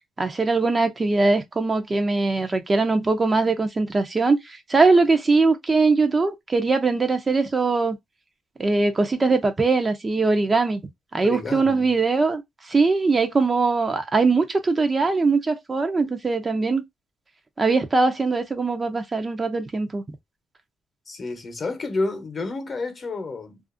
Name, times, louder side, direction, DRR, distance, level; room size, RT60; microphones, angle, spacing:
voice 1, 0.2-8.0 8.6-16.8 17.6-20.0, right 3 dB, 30° right, 0.6 m, -21 dB
voice 2, 11.2-11.8 21.1-23.6, left 3 dB, 40° left, 0.9 m, -30 dB
2.5 x 2.5 x 2.4 m
cardioid pair, 90°, 0 cm